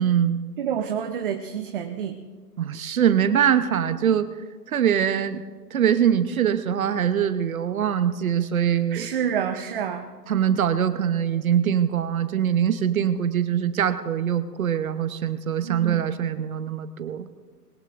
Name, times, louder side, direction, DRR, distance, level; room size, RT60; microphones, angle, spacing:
voice 1, 0.0-0.4 2.6-4.3 4.7-5.4 5.7-9.1 10.3-17.3, right 9 dB, 60° right, 12 dB, 0.9 m, -23 dB
voice 2, 0.6-2.3 8.9-10.1 15.6-16.1, right 8 dB, 35° right, 6 dB, 0.7 m, -28 dB
21.0 x 20.5 x 2.6 m, 1.5 s
hypercardioid pair, 140°, 48 cm